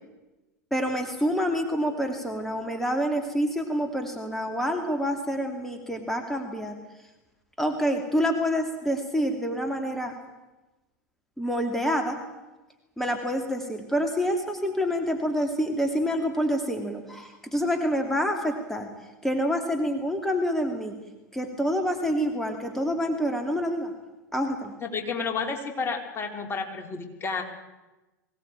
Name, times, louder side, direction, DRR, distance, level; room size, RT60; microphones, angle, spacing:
voice 1, 0.7-6.8 7.6-10.1 11.4-12.2 13.0-18.9 19.2-20.9 21.3-23.9 24.3-24.7, equal, 5° left, 4 dB, 2.8 m, -27 dB
voice 2, 24.8-27.4, left 5 dB, 25° left, 4 dB, 3.6 m, -31 dB
22.5 x 18.0 x 9.0 m, 1.1 s
figure-of-eight pair, 90°, 9 cm